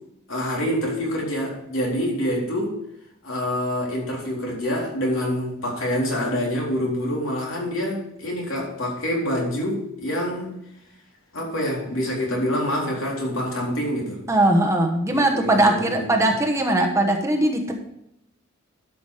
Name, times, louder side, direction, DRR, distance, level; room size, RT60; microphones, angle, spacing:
voice 1, 0.3-2.8 3.2-10.5 11.3-14.2 15.1-16.1, equal, 70° left, -2 dB, 3.8 m, -26 dB
voice 2, 14.3-17.7, right 1 dB, 15° right, 2 dB, 1.1 m, -20 dB
12.5 x 6.1 x 4.9 m, 0.80 s
head